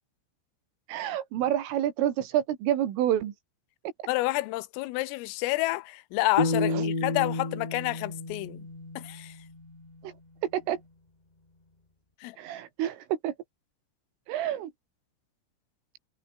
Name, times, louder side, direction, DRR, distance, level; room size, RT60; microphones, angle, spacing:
voice 1, 0.9-3.3 6.7-6.8 10.0-10.1 10.4-10.8 12.4-13.3 14.3-14.7, right 11 dB, 75° right, 4.8 m, -28 dB
voice 2, 4.1-8.7 9.0-9.3 12.2-12.4, left 20 dB, 85° left, 3.5 m, -29 dB
sound 1, 6.4-9.5, left 2 dB, 65° left, 0.4 m, -30 dB
omnidirectional pair, 5.8 m